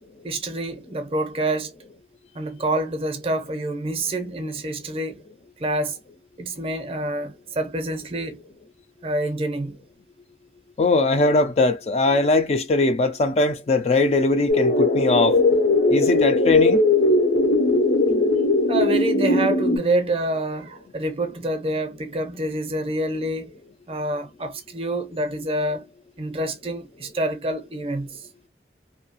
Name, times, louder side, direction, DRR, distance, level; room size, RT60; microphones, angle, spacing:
voice 1, 0.2-1.7 2.3-5.2 5.6-6.0 6.4-8.4 9.0-9.8 18.7-23.5 23.9-25.8 26.2-28.3, right 1 dB, 30° right, 0.5 m, -27 dB
voice 2, 10.8-15.4 15.9-16.8, left 2 dB, 35° left, 0.3 m, -20 dB
sound 1, 14.5-19.8, left 2 dB, 70° left, 0.7 m, -19 dB
2.6 x 2.3 x 2.7 m
head